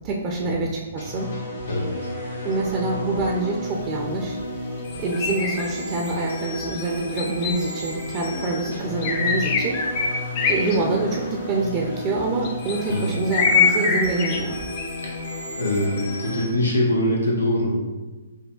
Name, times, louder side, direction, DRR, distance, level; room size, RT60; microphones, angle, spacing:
voice 1, 0.0-1.3 2.4-4.4 5.0-14.6, right 3 dB, 30° right, -1 dB, 0.4 m, -26 dB
sound 1, 1.0-16.5, left 2 dB, 70° left, 1.4 m, -32 dB
sound 2, 5.1-5.7 6.1-6.2 7.2-7.8 9.0-10.8 11.1-11.4 12.4-13.0 13.3-14.4 14.8-14.9, left 5 dB, 35° left, 0.4 m, -22 dB
voice 2, 12.9-13.2 15.0-15.2 15.6-17.9, left 1 dB, 85° left, -3 dB, 1.0 m, -23 dB
5.2 x 2.1 x 2.3 m, 1.2 s
figure-of-eight pair, 125°, 0 cm